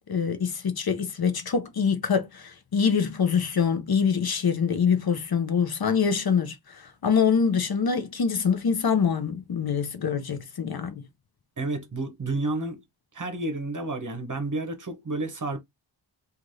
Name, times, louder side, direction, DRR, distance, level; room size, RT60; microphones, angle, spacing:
voice 1, 0.1-11.1, left 6 dB, 50° left, 0.6 m, -25 dB
voice 2, 11.6-12.8 13.1-15.6, right 2 dB, 40° right, 0.9 m, -30 dB
3.2 x 2.5 x 2.6 m
wide cardioid pair, 65°, 47 cm